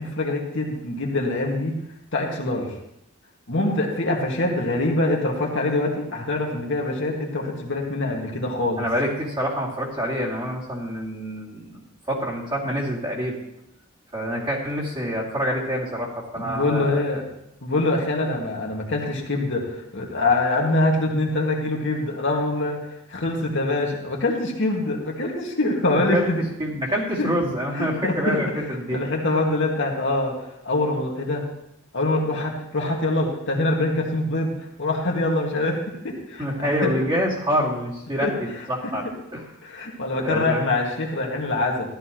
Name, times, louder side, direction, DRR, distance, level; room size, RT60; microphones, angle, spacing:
voice 1, 0.0-1.8 2.1-2.7 3.5-8.8 16.4-17.2 17.6-19.7 19.9-22.8 23.1-26.4 27.2-27.3 27.7-28.4 28.9-30.4 30.6-31.5 31.9-34.5 34.8-37.1 38.2-38.3 39.6-42.0, left 2 dB, 60° left, -1 dB, 1.9 m, -24 dB
voice 2, 8.8-11.8 12.1-13.4 14.1-17.2 25.9-26.3 26.6-29.0 36.4-39.5 40.2-40.7, equal, 25° right, -4 dB, 2.6 m, -26 dB
13.5 x 12.0 x 3.1 m, 0.82 s
head